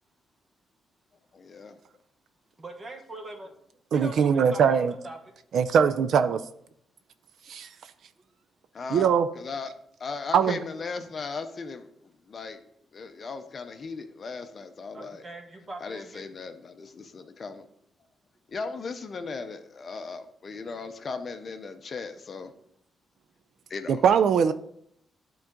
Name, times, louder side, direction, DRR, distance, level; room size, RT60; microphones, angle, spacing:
voice 1, 1.3-1.8 8.7-9.1 9.4-9.7 10.0-11.9 12.3-12.6 12.9-15.2 15.8-17.7 18.5-22.5 23.7-24.0, left 4 dB, 40° left, 0.5 m, -37 dB
voice 2, 2.6-3.5 3.9-5.3 14.9-16.3, right 2 dB, 30° right, 1.1 m, -42 dB
voice 3, 3.9-4.9 5.5-6.4 7.5-7.7 8.9-9.3 10.3-10.6 23.9-24.5, right 7 dB, 65° right, 0.3 m, -21 dB
11.5 x 3.9 x 3.6 m
cardioid pair, 140°, 0 cm